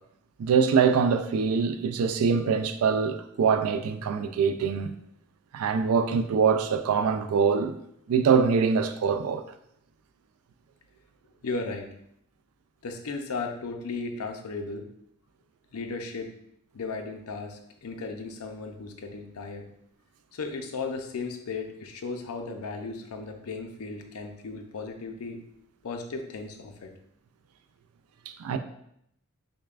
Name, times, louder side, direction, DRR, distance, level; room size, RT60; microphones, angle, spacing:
voice 1, 0.4-4.9 5.5-7.8 8.1-9.4 28.4-28.6, right 6 dB, 75° right, 0.3 m, -24 dB
voice 2, 11.4-11.9 12.8-14.9 15.7-16.3 16.7-19.7 20.3-25.4 25.8-26.9, left 4 dB, 80° left, 0.5 m, -35 dB
6.4 x 2.2 x 2.4 m
head